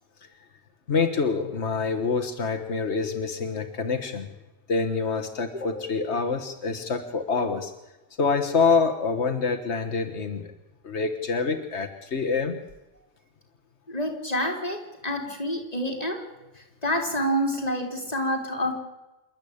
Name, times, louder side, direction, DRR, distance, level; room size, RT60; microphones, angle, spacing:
voice 1, 0.9-4.3 4.7-7.7 8.2-10.5 10.8-12.6, left 4 dB, 90° left, 6 dB, 1.8 m, -26 dB
voice 2, 13.9-16.3 16.6-18.7, equal, 35° left, 3 dB, 3.7 m, -28 dB
27.5 x 12.0 x 8.7 m, 1.0 s
omnidirectional pair, 1.1 m